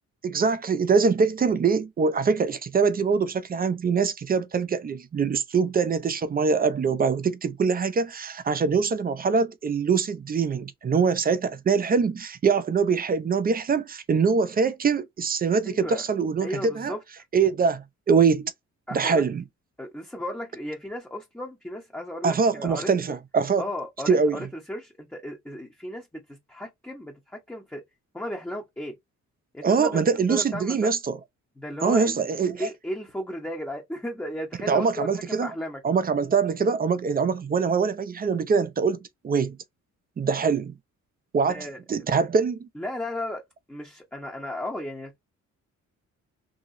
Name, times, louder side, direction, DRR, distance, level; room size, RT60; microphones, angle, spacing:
voice 1, 0.2-16.5 16.7-16.9 17.3-18.5 18.9-19.4 22.2-23.6 24.1-24.5 29.6-31.2 31.8-32.7 34.7-35.5 35.8-39.6 40.2-40.8 41.3-42.7, right 5 dB, 30° right, 0.5 m, -23 dB
voice 2, 15.6-16.0 16.4-17.0 18.9-19.2 19.8-22.9 23.6-27.8 28.1-29.0 29.5-30.9 31.6-32.2 32.5-35.8 41.5-41.8 42.8-43.4 43.7-45.2, left 1 dB, 5° left, 0.8 m, -35 dB
2.9 x 2.7 x 2.5 m
cardioid pair, 120°, 30 cm